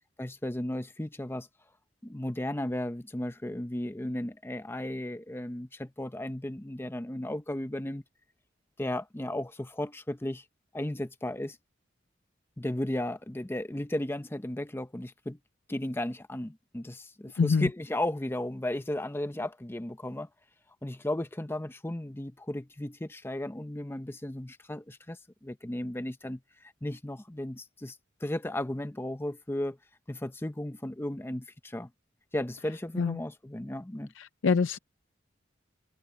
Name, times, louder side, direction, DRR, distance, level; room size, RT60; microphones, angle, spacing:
voice 1, 0.2-1.5 2.0-8.0 8.8-10.4 10.7-11.6 12.6-15.4 15.7-20.3 20.8-28.0 28.2-29.8 30.1-31.9 32.3-34.1, left 1 dB, 10° left, 0.7 m, -35 dB
voice 2, 17.4-17.7 33.0-33.2 34.2-34.8, left 5 dB, 90° left, 0.5 m, -25 dB
head